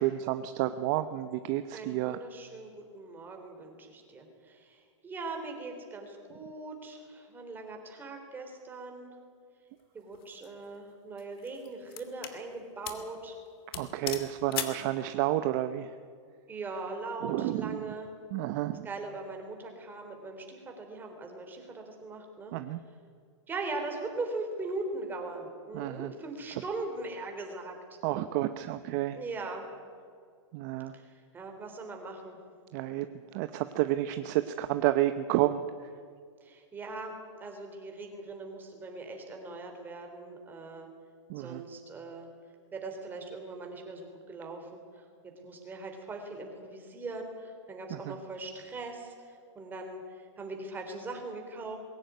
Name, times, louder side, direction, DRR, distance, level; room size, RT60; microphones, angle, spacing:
voice 1, 0.0-2.2 13.7-15.9 17.2-17.8 18.3-18.9 22.5-22.8 25.7-26.1 28.0-29.2 30.5-30.9 32.7-33.1 33.3-35.6 41.3-41.6 47.9-48.2, right 14 dB, 35° right, 10 dB, 0.8 m, -30 dB
voice 2, 1.7-9.1 9.9-13.4 16.5-18.2 18.8-22.5 23.5-28.0 29.1-29.7 30.9-32.4 36.4-40.9 41.4-42.3 42.7-45.1 45.4-51.8, right 3 dB, 10° right, 3 dB, 3.7 m, -40 dB
sound 1, 10.1-10.5 11.2-12.4 12.8-13.1 13.4-13.5 13.7-14.9, left 10 dB, 50° left, 2.7 m, -38 dB
21.5 x 17.0 x 9.5 m, 2.1 s
hypercardioid pair, 155°, 16 cm